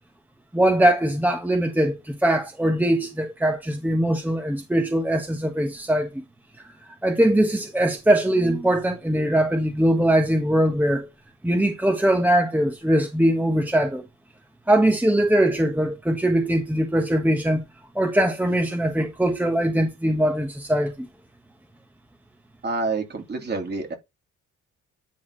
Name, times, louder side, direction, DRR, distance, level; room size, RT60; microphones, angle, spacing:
voice 1, 0.5-6.2 7.0-11.1 11.4-14.0 14.7-17.6 17.9-21.1, right 1 dB, 5° right, 1.4 m, -21 dB
voice 2, 22.6-23.9, right 3 dB, 35° right, 3.0 m, -28 dB
10.5 x 4.2 x 4.1 m
cardioid pair, 90°, 30 cm